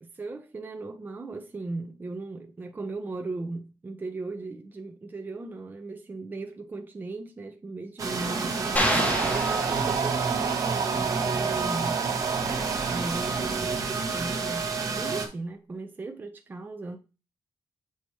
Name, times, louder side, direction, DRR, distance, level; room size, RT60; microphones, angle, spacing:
voice 1, 0.0-9.0 9.3-12.0 12.9-17.0, right 3 dB, 20° right, 0.6 m, -37 dB
sound 1, 8.0-15.3, right 4 dB, 45° right, 1.1 m, -29 dB
sound 2, 8.5-14.4, right 7 dB, 70° right, 0.5 m, -32 dB
sound 3, 8.8-10.5, left 1 dB, 20° left, 1.0 m, -29 dB
6.9 x 3.0 x 4.6 m
wide cardioid pair, 130°, 8 cm